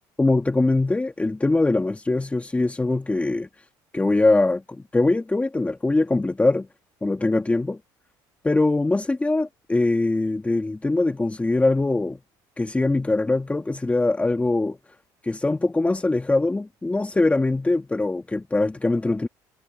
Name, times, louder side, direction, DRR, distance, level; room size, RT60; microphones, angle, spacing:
voice 1, 0.2-3.5 3.9-6.7 7.0-7.8 8.4-12.2 12.6-14.8 15.2-19.3, left 2 dB, 15° left, 1.6 m, -22 dB
supercardioid pair, 80°, 10 cm